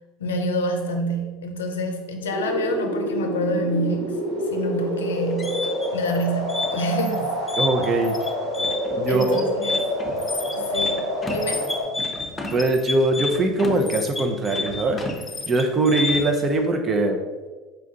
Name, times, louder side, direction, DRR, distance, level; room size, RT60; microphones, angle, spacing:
voice 1, 0.2-4.2 4.5-5.6 5.9-7.3 9.1-9.8 10.5-11.7, equal, 90° left, 4 dB, 0.5 m, -27 dB
sound 1, 2.3-11.8, equal, 90° right, 1.3 m, -27 dB
sound 2, 5.1-16.5, left 3 dB, 20° left, 0.8 m, -30 dB
voice 2, 7.6-8.2 9.0-9.5 12.5-15.0 15.4-17.2, right 2 dB, 35° right, 4 dB, 0.7 m, -21 dB
4.4 x 2.4 x 3.9 m, 1.3 s
hypercardioid pair, 80°, 0 cm